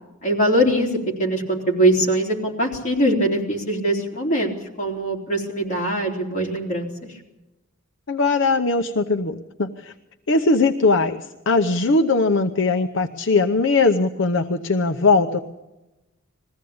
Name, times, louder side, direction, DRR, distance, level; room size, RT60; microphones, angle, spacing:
voice 1, 0.2-6.9, right 1 dB, 35° left, -1 dB, 3.6 m, -22 dB
voice 2, 8.1-9.9 10.3-15.4, left 3 dB, 60° left, 5 dB, 0.8 m, -20 dB
21.0 x 15.5 x 8.7 m, 1.0 s
head